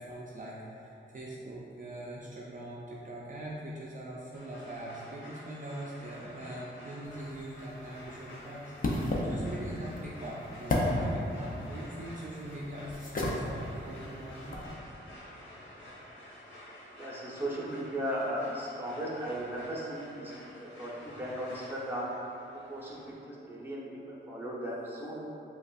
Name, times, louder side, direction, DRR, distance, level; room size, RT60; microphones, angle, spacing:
voice 1, 0.0-14.6, right 1 dB, 40° right, -5 dB, 0.4 m, -42 dB
sound 1, 4.3-23.1, left 1 dB, 65° left, 1.0 m, -50 dB
sound 2, 7.0-14.7, left 1 dB, 45° left, 0.6 m, -35 dB
voice 2, 17.0-22.1 22.7-23.0 23.2-25.2, equal, 10° right, -5 dB, 0.9 m, -36 dB
5.1 x 2.3 x 2.4 m, 3.0 s
cardioid pair, 60°, 20 cm